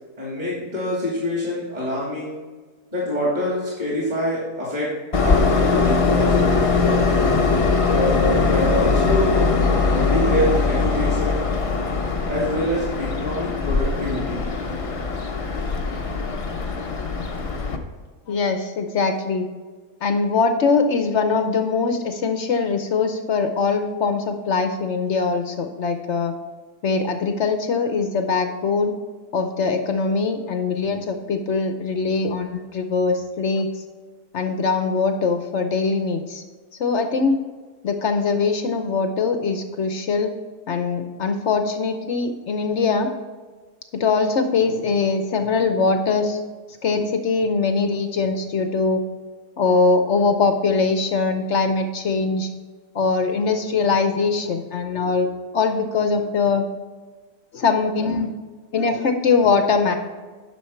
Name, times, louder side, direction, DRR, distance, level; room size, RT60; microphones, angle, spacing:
voice 1, 0.2-2.4 2.9-4.9 5.2-6.4 7.8-9.4 9.9-11.4 12.3-14.5, left 1 dB, 25° right, -6 dB, 2.6 m, -25 dB
Train, 5.1-17.8, left 4 dB, 40° left, 0.4 m, -21 dB
voice 2, 18.3-19.5 20.0-26.3 26.8-28.9 29.3-33.7 34.3-36.4 36.8-37.4 37.8-40.3 40.7-43.1 43.9-46.4 46.8-49.0 49.6-52.5 52.9-56.7 57.5-58.3 58.7-59.9, left 4 dB, 60° left, 7 dB, 0.8 m, -22 dB
10.5 x 6.4 x 4.5 m, 1.4 s
omnidirectional pair, 1.7 m